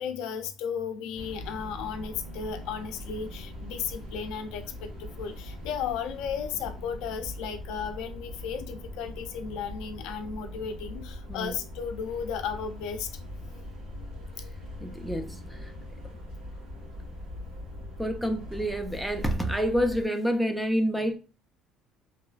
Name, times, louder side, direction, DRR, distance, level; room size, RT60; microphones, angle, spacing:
voice 1, 0.0-13.1, left 7 dB, 75° left, 0.4 m, -34 dB
sound 1, 1.2-20.1, left 1 dB, 85° right, 1.4 m, -41 dB
voice 2, 14.8-15.9 18.0-21.2, equal, ahead, 0.3 m, -28 dB
2.9 x 2.4 x 2.3 m
cardioid pair, 135°, 0 cm